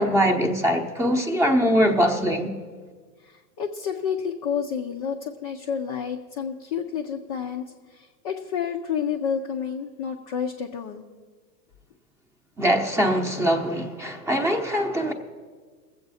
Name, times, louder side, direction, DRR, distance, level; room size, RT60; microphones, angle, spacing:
voice 1, 0.0-2.5 12.6-15.1, equal, 5° right, 0.7 m, -22 dB
voice 2, 3.6-7.6 7.9-11.0, left 7 dB, 25° left, 0.4 m, -29 dB
21.5 x 7.9 x 4.1 m
hypercardioid pair, 130°, 50 cm